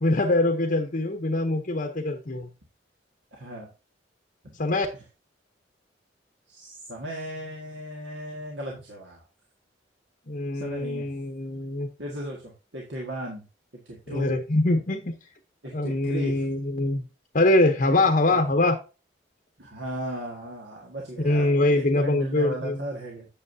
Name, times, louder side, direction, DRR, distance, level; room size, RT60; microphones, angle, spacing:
voice 1, 0.0-2.5 4.6-4.9 10.3-11.9 14.1-15.1 15.7-17.0 17.3-18.8 21.2-22.8, left 2 dB, 45° left, 5 dB, 0.8 m, -23 dB
voice 2, 3.3-3.7 6.5-9.2 10.5-11.1 12.0-13.5 13.9-14.4 15.6-16.5 18.3-18.4 19.6-23.3, right 1 dB, 70° right, -2 dB, 1.8 m, -36 dB
8.9 x 7.2 x 2.7 m, 0.31 s
head